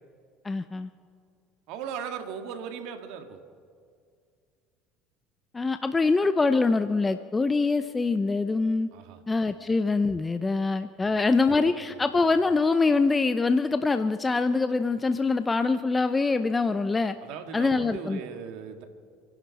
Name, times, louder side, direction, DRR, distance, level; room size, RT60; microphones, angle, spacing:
voice 1, 0.4-0.9 5.5-8.9 9.3-17.2 17.5-18.2, left 3 dB, 20° left, 10 dB, 0.7 m, -24 dB
voice 2, 1.7-3.4 8.9-9.2 9.6-9.7 11.0-11.3 11.7-12.0 17.2-18.8, right 7 dB, 70° right, 6 dB, 2.0 m, -38 dB
29.0 x 11.0 x 4.2 m, 2.2 s
hypercardioid pair, 80°, 0 cm